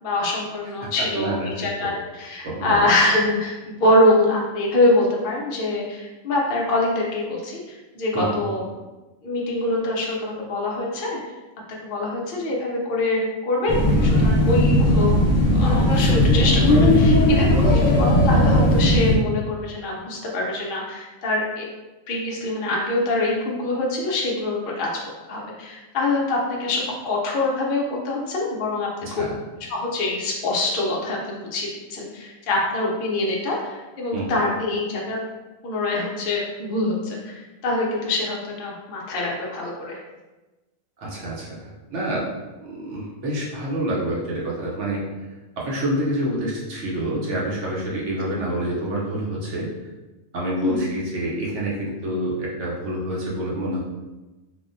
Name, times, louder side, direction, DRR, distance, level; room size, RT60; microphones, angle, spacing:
voice 1, 0.0-8.6 9.2-11.2 11.8-15.2 15.5-21.7 22.1-24.9 25.3-29.2 29.7-35.2 35.6-40.0 48.3-48.4 50.6-50.8, left 2 dB, 60° left, -3 dB, 0.6 m, -24 dB
voice 2, 1.2-1.7 2.4-2.9 8.1-8.4 29.0-29.4 34.1-34.4 41.0-42.3 42.6-45.0 45.6-49.7 50.3-53.8, right 1 dB, 65° right, -5 dB, 1.0 m, -27 dB
sound 1, 13.7-19.1, left 1 dB, 35° left, 1.1 m, -17 dB
3.4 x 2.1 x 2.5 m, 1.1 s
omnidirectional pair, 1.4 m